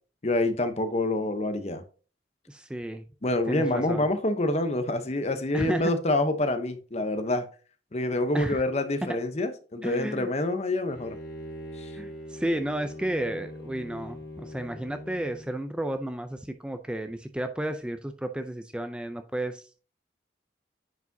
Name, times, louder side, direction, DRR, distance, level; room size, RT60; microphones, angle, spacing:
voice 1, 0.2-1.8 3.2-7.5 7.9-11.2 11.8-11.9, left 2 dB, 40° left, 0.8 m, -27 dB
voice 2, 2.5-3.0 3.5-4.1 5.5-5.9 8.3-8.6 9.8-10.3 11.9-19.6, right 1 dB, 5° right, 0.4 m, -32 dB
Bowed string instrument, 10.9-15.6, left 1 dB, 80° left, 3.7 m, -42 dB
9.4 x 4.9 x 2.7 m
head